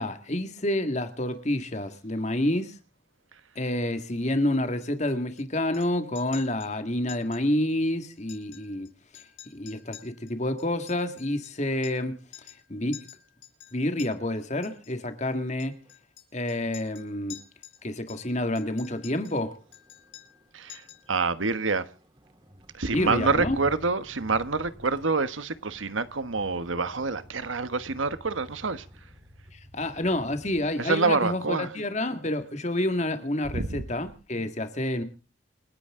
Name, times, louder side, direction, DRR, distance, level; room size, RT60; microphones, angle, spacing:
voice 1, 0.0-2.8 3.6-9.2 9.5-12.2 12.7-13.1 13.7-15.8 16.3-17.4 17.8-19.6 22.9-23.6 29.5-35.0, left 1 dB, 35° left, 2.0 m, -28 dB
Chink clink, 4.8-5.4 5.7-5.9 6.1-6.7 7.1-7.4 7.7-7.8 8.2-8.9 9.1-12.1 12.3-12.6 12.9-14.1 14.6-14.9 15.6-17.8 18.1-19.4 19.7-20.4 20.7-21.1, left 12 dB, 85° left, 5.6 m, -48 dB
Motor vehicle (road), 15.7-16.0 16.4-30.8 31.2-31.6, equal, 25° right, 3.3 m, -48 dB
voice 2, 21.1-21.9 22.7-28.8 30.8-31.7 33.5-33.8, right 4 dB, 85° right, 1.3 m, -27 dB
28.5 x 10.0 x 3.8 m
head